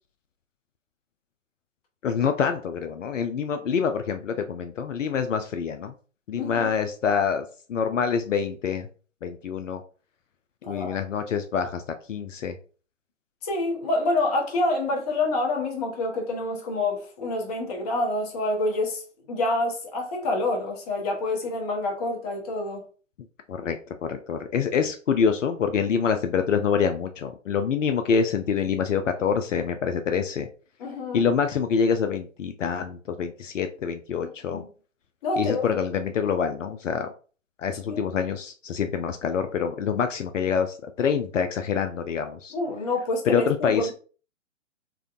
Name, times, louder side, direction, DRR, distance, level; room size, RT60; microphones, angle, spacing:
voice 1, 2.0-5.9 6.3-8.9 9.2-9.8 10.7-11.8 12.1-12.6 23.5-23.8 24.0-30.5 31.1-34.6 35.4-37.1 37.6-42.5 43.3-43.9, left 6 dB, 75° left, 0.5 m, -26 dB
voice 2, 6.4-6.7 10.6-11.0 13.4-19.0 19.3-22.8 30.8-31.3 34.5-34.7 35.2-35.6 37.9-38.0 42.5-43.9, left 2 dB, 30° left, 0.9 m, -27 dB
3.5 x 2.1 x 2.4 m
figure-of-eight pair, 125°, 38 cm